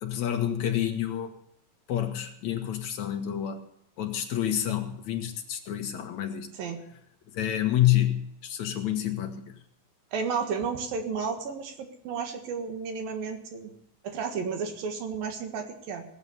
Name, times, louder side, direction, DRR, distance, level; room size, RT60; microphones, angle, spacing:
voice 1, 0.0-1.3 1.9-3.6 4.0-6.5 7.3-9.5, left 11 dB, 60° left, 6 dB, 2.3 m, -28 dB
voice 2, 10.1-13.7 14.0-16.1, right 5 dB, 70° right, 6 dB, 3.4 m, -32 dB
18.5 x 8.1 x 6.9 m, 0.77 s
omnidirectional pair, 4.2 m